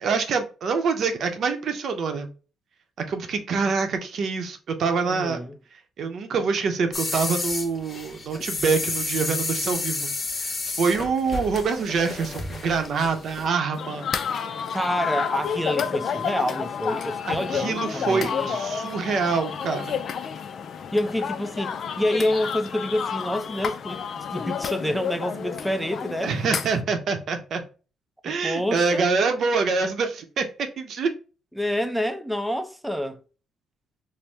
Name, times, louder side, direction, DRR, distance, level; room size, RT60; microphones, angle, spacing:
voice 1, 0.0-2.3 3.1-5.4 6.0-10.1 10.4-14.1 17.3-20.0 26.2-27.6 28.2-31.1, right 5 dB, 60° right, 0.7 m, -25 dB
voice 2, 5.1-5.5 14.7-18.6 20.9-26.3 28.4-29.1 31.6-33.2, left 1 dB, ahead, 0.6 m, -27 dB
sound 1, 6.9-13.5, left 3 dB, 35° left, 0.8 m, -31 dB
sound 2, 13.7-26.8, left 7 dB, 60° left, 0.4 m, -30 dB
4.3 x 2.1 x 3.3 m
cardioid pair, 90°, 0 cm